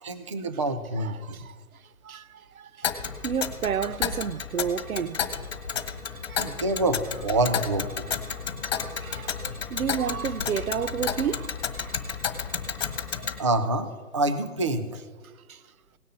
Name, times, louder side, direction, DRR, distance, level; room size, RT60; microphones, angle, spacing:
voice 1, 0.0-1.5 6.4-8.1 13.4-13.9 14.1-15.0, right 2 dB, 25° right, 0.4 m, -27 dB
voice 2, 1.0-1.6 2.0-2.9 3.2-5.3 5.7-5.8 6.3-6.6 8.3-11.9 13.2-13.3 15.5-15.6, right 7 dB, 80° right, 0.7 m, -32 dB
Tick, 2.8-13.4, left 7 dB, 45° left, 1.5 m, -32 dB
18.0 x 6.4 x 5.3 m
hypercardioid pair, 145°, 42 cm